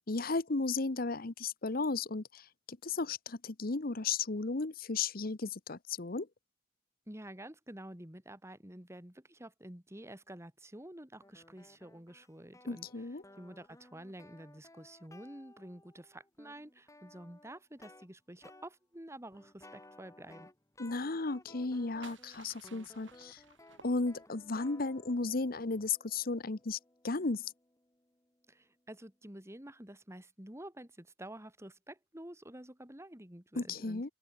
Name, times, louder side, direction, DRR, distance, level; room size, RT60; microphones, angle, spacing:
voice 1, 0.1-6.3 12.7-13.2 20.8-23.4 23.8-26.8 27.0-27.5 33.6-34.1, left 3 dB, 50° left, 1.0 m, -34 dB
voice 2, 7.1-13.1 13.4-20.5 28.5-34.1, right 1 dB, 15° right, 2.9 m, -49 dB
sound 1, 11.2-18.1 18.4-18.7 19.3-28.4, left 2 dB, 15° left, 2.6 m, -59 dB
sound 2, 21.5-24.5, right 5 dB, 80° right, 3.2 m, -58 dB
open air
head